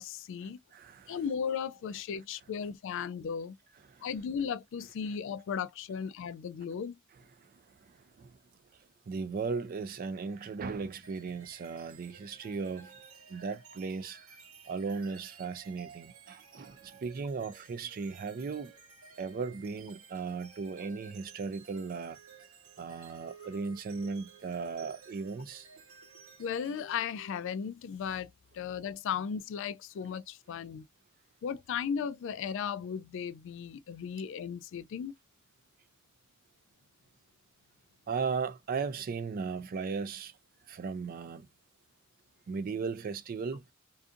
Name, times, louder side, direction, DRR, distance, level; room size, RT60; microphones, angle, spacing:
voice 1, 0.0-0.6 1.1-3.6 4.0-7.0 26.4-28.3 28.5-30.8 31.4-35.1, left 7 dB, 60° left, 0.3 m, -36 dB
voice 2, 0.7-1.2 8.2-8.3 9.1-12.9 13.3-14.2 14.7-18.7 19.2-22.2 22.8-25.7 38.1-40.3 40.7-41.5 42.5-43.6, right 5 dB, 45° right, 0.3 m, -36 dB
sound 1, 11.0-27.7, right 5 dB, 75° right, 0.9 m, -55 dB
2.5 x 2.5 x 2.4 m
head